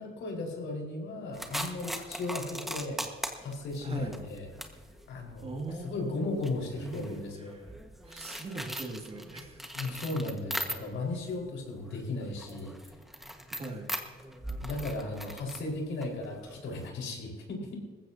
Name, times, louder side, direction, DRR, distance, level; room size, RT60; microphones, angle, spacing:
voice 1, 0.0-3.0 3.4-4.5 5.1-5.5 5.8-7.5 9.7-12.9 14.6-17.9, left 2 dB, 65° left, -1 dB, 4.6 m, -36 dB
sound 1, 1.3-11.2 11.5-16.9, equal, ahead, 1.4 m, -41 dB
voice 2, 3.8-4.2 5.4-6.4 6.8-7.2 7.5-7.6 8.0-9.7 13.6-13.9, right 2 dB, 30° right, 1 dB, 2.2 m, -40 dB
20.0 x 15.0 x 2.8 m, 1.5 s
cardioid pair, 115°, 21 cm